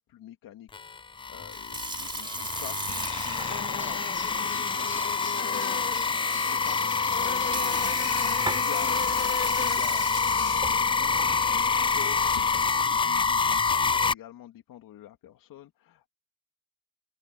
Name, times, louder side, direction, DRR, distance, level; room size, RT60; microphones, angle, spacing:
voice 1, 0.1-0.7 1.3-16.1, left 12 dB, 80° left, 2.3 m, -46 dB
sound 1, 0.7-14.1, left 5 dB, 15° left, 0.4 m, -27 dB
Sink (filling or washing) / Fill (with liquid), 1.4-12.9, right 2 dB, 15° right, 3.5 m, -39 dB
sound 2, 2.9-12.7, left 6 dB, 35° left, 2.7 m, -37 dB
cardioid pair, 120°, 34 cm